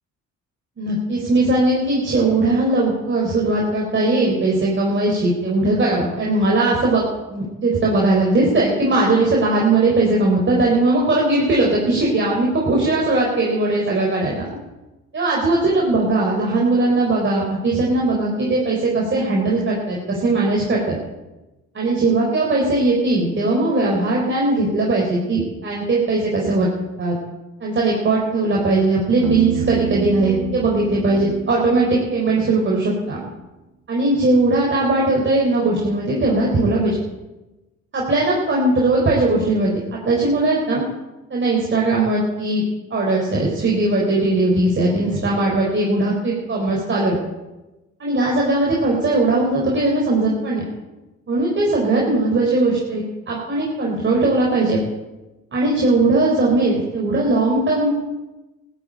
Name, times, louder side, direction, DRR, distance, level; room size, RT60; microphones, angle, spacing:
voice 1, 0.8-14.5 15.1-21.0 21.7-26.7 27.0-27.2 27.6-33.2 33.9-37.0 37.9-39.7 40.1-40.8 41.3-42.6 42.9-47.1 48.0-50.6 51.3-54.8 55.5-57.9, right 2 dB, 40° right, -3 dB, 4.0 m, -19 dB
Piano, 29.2-32.9, right 7 dB, 85° right, 1.2 m, -28 dB
14.5 x 9.0 x 9.0 m, 1.1 s
cardioid pair, 90°, 30 cm